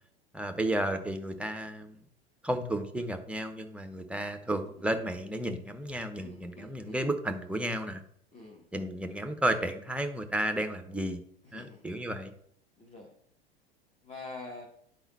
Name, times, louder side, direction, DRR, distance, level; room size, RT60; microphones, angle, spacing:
voice 1, 0.3-2.0 2.4-8.0 8.7-11.2 11.5-12.3, right 1 dB, 5° right, 7 dB, 0.7 m, -32 dB
voice 2, 6.2-7.0 8.3-8.6 11.4-11.8 12.8-13.1 14.0-14.7, left 3 dB, 20° left, 1 dB, 1.3 m, -46 dB
11.0 x 4.0 x 4.0 m, 0.65 s
figure-of-eight pair, 80°, 30 cm